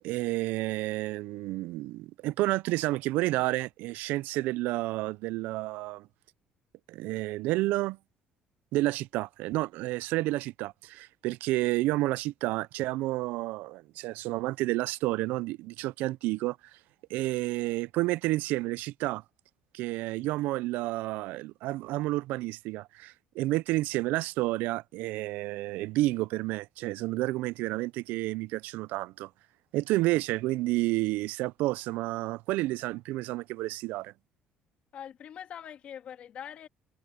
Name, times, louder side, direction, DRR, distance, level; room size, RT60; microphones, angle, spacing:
voice 1, 0.0-6.1 6.9-8.0 8.7-16.6 17.1-19.2 19.7-29.3 29.7-34.1, right 19 dB, 80° right, 0.4 m, -30 dB
voice 2, 34.9-36.7, left 9 dB, 45° left, 2.2 m, -43 dB
cardioid pair, 155°, 3 cm